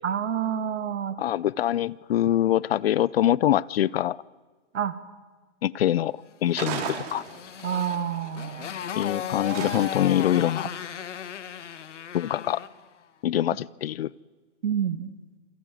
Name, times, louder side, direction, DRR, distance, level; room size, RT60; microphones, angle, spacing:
voice 1, 0.0-1.2 4.7-5.0 7.6-8.7 14.6-15.1, right 8 dB, 80° right, 11 dB, 2.4 m, -28 dB
voice 2, 1.2-4.2 5.6-7.2 8.9-10.7 12.1-12.6 13.2-14.1, left 12 dB, 55° left, 23 dB, 0.7 m, -24 dB
sound 1, 6.5-7.7 9.5-10.2, right 8 dB, 35° right, 3.4 m, -34 dB
Motorcycle, 6.7-12.8, left 8 dB, 80° left, 1.9 m, -36 dB
28.0 x 21.0 x 7.8 m, 1.3 s
hypercardioid pair, 155°, 36 cm